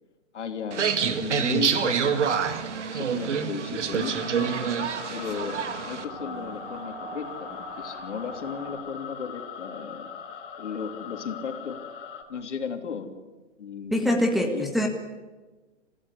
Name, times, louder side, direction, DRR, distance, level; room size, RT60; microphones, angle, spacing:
voice 1, 0.3-2.4 2.9-4.6 5.1-5.6 5.9-10.1 10.6-11.8 12.3-13.2 13.6-14.7, left 6 dB, 70° left, 6 dB, 3.2 m, -35 dB
sound 1, 0.7-6.0, right 7 dB, 70° right, 2.4 m, -27 dB
sound 2, 4.0-12.2, left 7 dB, 45° left, 3.3 m, -41 dB
sound 3, 5.1-8.7, right 3 dB, 50° right, 7.3 m, -43 dB
voice 2, 13.9-14.9, left 1 dB, ahead, 1 dB, 1.7 m, -23 dB
23.5 x 15.5 x 9.8 m, 1.2 s
hypercardioid pair, 150°, 36 cm